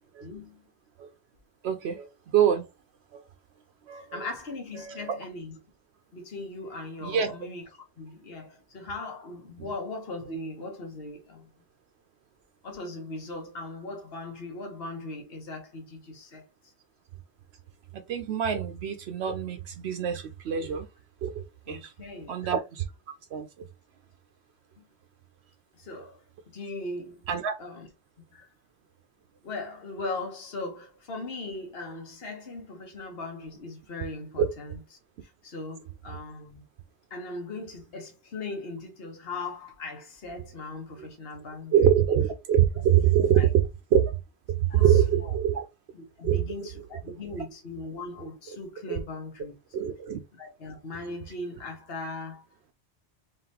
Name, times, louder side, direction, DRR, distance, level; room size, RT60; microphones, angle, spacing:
voice 1, 0.2-0.6 3.9-5.6 6.1-7.6 8.0-11.5 12.6-16.7 21.7-22.3 24.8-24.9 25.7-27.2 27.6-27.9 28.3-28.5 29.4-34.8 35.2-36.6 37.1-41.7 43.2-43.5 44.7-45.3 45.9-49.5 50.3-52.4, left 2 dB, 60° left, 1.4 m, -39 dB
voice 2, 1.6-2.6 3.1-3.2 3.9-4.3 4.8-5.2 7.0-7.3 17.9-20.9 21.2-21.9 22.3-22.8 23.3-23.5 27.3-27.5 34.4-34.5 41.7-43.5 43.9-44.1 44.8-45.7 46.2-46.4 48.9-49.0 49.7-50.2, right 9 dB, 75° right, 0.8 m, -24 dB
3.9 x 3.7 x 2.8 m
omnidirectional pair, 1.1 m